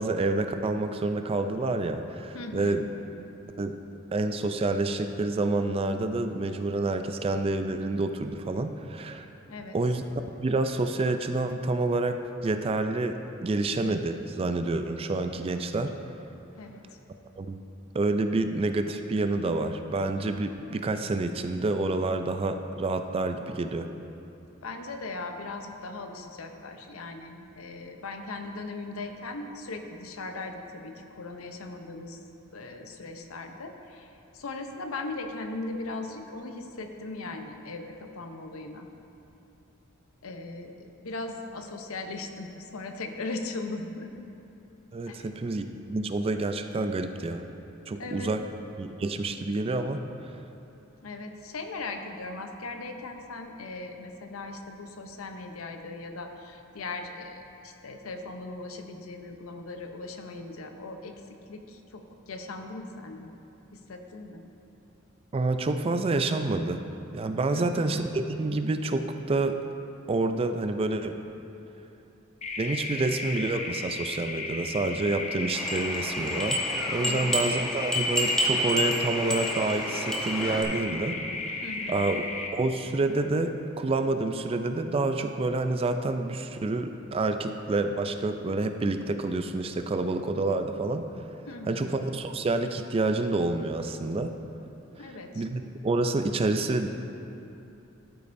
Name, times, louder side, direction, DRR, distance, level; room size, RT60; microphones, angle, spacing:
voice 1, 0.0-2.9 3.6-3.8 4.1-9.3 9.7-10.0 10.4-15.9 17.4-17.6 17.9-23.9 44.9-47.4 47.9-48.4 48.8-50.0 65.3-66.9 67.1-69.6 70.1-71.2 72.6-76.6 76.9-81.2 81.4-81.6 81.9-91.1 91.7-94.4 95.4-96.9, right 2 dB, 25° right, 8 dB, 0.3 m, -28 dB
voice 2, 2.3-2.9 9.5-9.8 16.6-17.0 24.6-32.2 32.5-38.9 40.2-44.1 45.1-45.3 48.0-48.3 51.0-61.1 61.5-63.3 63.7-64.5 67.5-68.0 77.0-77.6 81.6-82.1 91.5-92.0 95.0-95.5, left 3 dB, 85° left, 5 dB, 0.7 m, -39 dB
sound 1, 72.4-82.5, left 3 dB, 35° left, 0.6 m, -34 dB
sound 2, 75.5-80.6, equal, 5° left, 0.9 m, -29 dB
12.5 x 8.4 x 2.6 m, 2.8 s
head